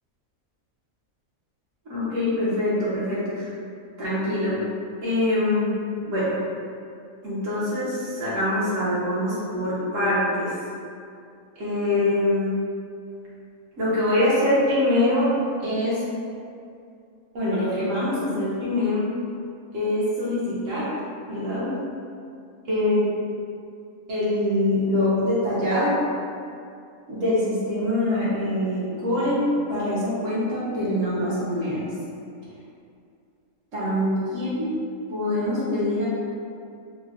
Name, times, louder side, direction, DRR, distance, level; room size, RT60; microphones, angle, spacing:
voice 1, 1.9-3.5 4.0-4.6 5.0-5.7 6.1-6.4 7.2-10.5 11.6-12.6 13.8-15.3 15.6-16.0 17.3-19.0 19.7-20.9 21.3-21.8 22.7-23.1 24.1-26.0 27.1-31.9 33.7-34.6 35.1-36.1, left 1 dB, 65° right, -9 dB, 1.3 m, -24 dB
3.8 x 2.1 x 2.4 m, 2.4 s
omnidirectional pair, 1.5 m